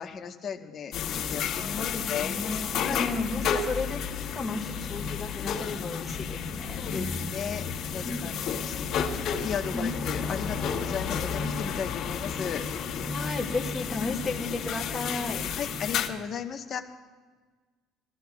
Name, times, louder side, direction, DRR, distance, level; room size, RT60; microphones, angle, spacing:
voice 1, 0.0-2.4 2.8-3.1 3.5-3.6 6.8-7.0 7.3-12.6 15.6-16.8, left 7 dB, 40° left, 4 dB, 1.1 m, -36 dB
sound 1, 0.9-16.1, left 6 dB, 55° left, 1.9 m, -32 dB
voice 2, 1.6-4.0 4.3-7.2 8.0-8.3 9.7-9.9 13.1-15.4, left 3 dB, 15° left, -1 dB, 1.8 m, -34 dB
22.0 x 14.5 x 2.3 m, 1.4 s
cardioid pair, 140°, 0 cm